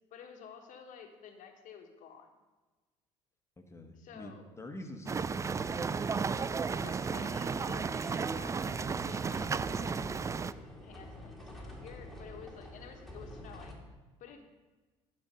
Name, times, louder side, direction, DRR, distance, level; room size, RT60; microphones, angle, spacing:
voice 1, 0.1-2.3 3.9-4.5 6.7-9.9 10.8-13.8 14.2-14.4, left 7 dB, 60° left, 5 dB, 1.3 m, -51 dB
voice 2, 3.6-5.9, left 1 dB, 20° left, 4 dB, 1.5 m, -47 dB
sound 1, 5.1-10.5, right 5 dB, 20° right, 0.3 m, -34 dB
sound 2, 5.2-13.7, left 1 dB, ahead, 2.3 m, -48 dB
11.5 x 4.5 x 5.4 m, 1.3 s
hypercardioid pair, 65°, 15 cm